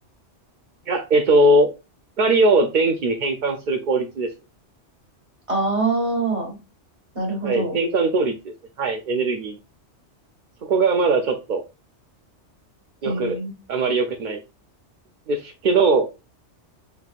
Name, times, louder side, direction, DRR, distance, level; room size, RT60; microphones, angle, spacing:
voice 1, 0.9-1.7 2.2-4.3 7.4-9.6 10.6-11.6 13.0-13.4 13.7-14.4 15.3-16.1, right 2 dB, 55° right, 3 dB, 0.6 m, -20 dB
voice 2, 5.5-6.6 7.1-7.8 13.0-13.5, right 3 dB, 25° right, 1 dB, 1.5 m, -24 dB
5.6 x 3.3 x 2.4 m, 0.28 s
omnidirectional pair, 1.2 m